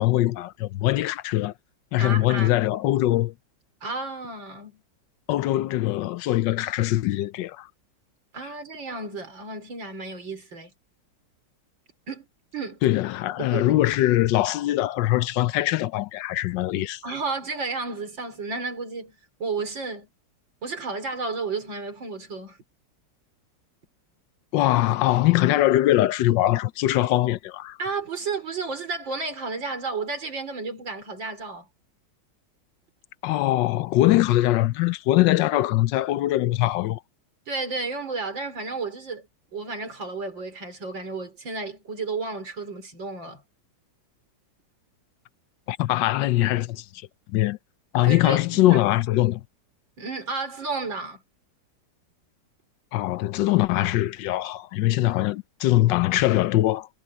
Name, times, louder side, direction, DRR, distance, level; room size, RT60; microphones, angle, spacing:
voice 1, 0.0-1.5 1.9-3.3 5.3-7.7 12.8-17.0 24.5-27.8 33.2-37.0 45.7-46.8 47.3-47.6 47.9-49.4 52.9-56.9, left 15 dB, 80° left, 1.3 m, -22 dB
voice 2, 2.0-2.5 3.8-4.8 8.3-10.7 12.1-12.3 12.5-12.8 13.4-13.7 17.0-19.1 19.4-20.1 20.6-22.6 27.8-31.7 37.5-39.3 39.5-43.4 48.0-48.8 50.0-51.2, right 4 dB, 90° right, 5.1 m, -32 dB
omnidirectional pair, 2.0 m